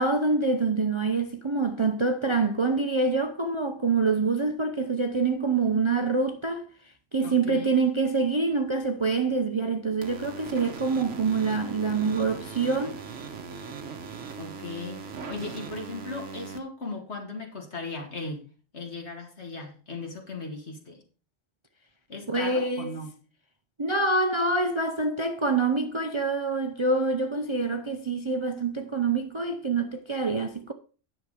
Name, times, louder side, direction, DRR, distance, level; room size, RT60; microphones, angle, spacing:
voice 1, 0.0-6.7 7.1-13.0 22.3-22.9 23.8-30.7, right 3 dB, 30° right, 0.6 m, -26 dB
voice 2, 7.2-7.7 14.4-15.0 15.3-18.4 18.7-21.0 22.1-23.1, left 3 dB, 60° left, 2.4 m, -37 dB
sound 1, 10.0-16.6, right 5 dB, 75° right, 1.4 m, -39 dB
10.0 x 6.6 x 4.9 m
omnidirectional pair, 1.3 m